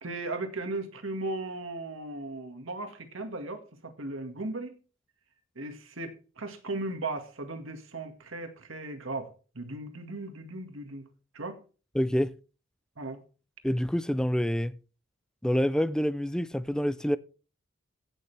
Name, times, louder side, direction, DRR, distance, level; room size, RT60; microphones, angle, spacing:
voice 1, 0.0-4.8 5.6-11.1 11.3-11.6 13.0-13.2, right 2 dB, 70° right, 1.9 m, -37 dB
voice 2, 11.9-12.3 13.6-14.7 15.4-17.2, equal, 5° left, 0.4 m, -27 dB
16.5 x 6.7 x 3.4 m
head